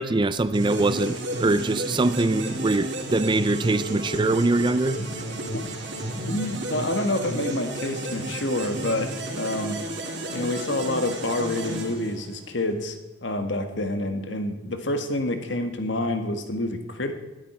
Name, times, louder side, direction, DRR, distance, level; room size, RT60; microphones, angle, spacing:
voice 1, 0.0-5.0, right 2 dB, 25° right, 14 dB, 0.4 m, -23 dB
sound 1, 0.5-12.6, right 1 dB, 55° right, 3.4 m, -32 dB
voice 2, 6.3-9.8 10.3-17.1, left 1 dB, 60° left, 7 dB, 1.6 m, -28 dB
20.5 x 13.0 x 4.4 m, 1.1 s
head